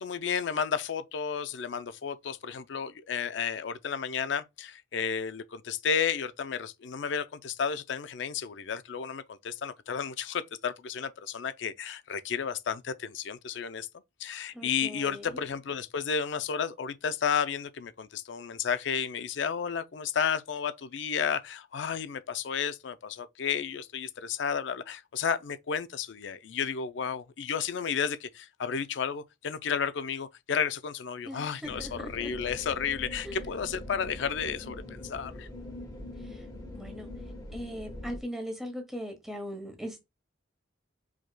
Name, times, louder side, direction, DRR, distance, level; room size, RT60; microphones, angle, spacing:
voice 1, 0.0-13.9 14.2-35.5, left 7 dB, 70° left, 0.4 m, -32 dB
voice 2, 14.5-15.4 31.2-32.3 33.2-33.4 36.2-36.4 36.7-37.1 37.5-40.0, equal, ahead, 1.1 m, -40 dB
sound 1, 31.6-38.2, left 1 dB, 20° left, 1.1 m, -42 dB
4.9 x 4.0 x 2.2 m
head